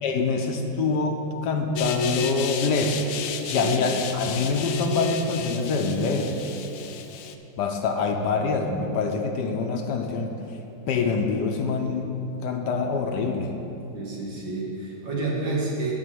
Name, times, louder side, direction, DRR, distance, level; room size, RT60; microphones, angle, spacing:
voice 1, 0.0-3.0 3.5-6.4 7.6-10.3 10.9-12.2 12.4-13.6, left 4 dB, 70° left, 4 dB, 1.2 m, -25 dB
sound 1, 1.8-7.3, left 5 dB, 85° left, 0.7 m, -31 dB
voice 2, 13.9-15.9, right 3 dB, 75° right, -4 dB, 2.5 m, -29 dB
11.0 x 4.3 x 7.7 m, 2.9 s
omnidirectional pair, 2.0 m